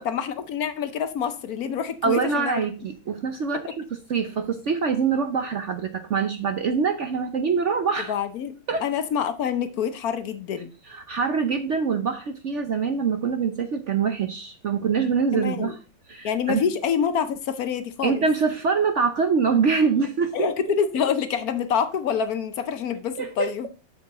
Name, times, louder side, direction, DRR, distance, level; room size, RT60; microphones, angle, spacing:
voice 1, 0.0-2.6 8.1-8.5 8.8-10.7 15.3-15.7 16.2-18.2 20.3-23.7, left 7 dB, 65° left, 1.0 m, -26 dB
voice 2, 2.0-8.1 8.7-8.8 10.8-15.8 16.1-16.6 18.0-20.5 23.2-23.5, right 5 dB, 65° right, 0.7 m, -24 dB
7.3 x 6.9 x 3.7 m
omnidirectional pair, 2.1 m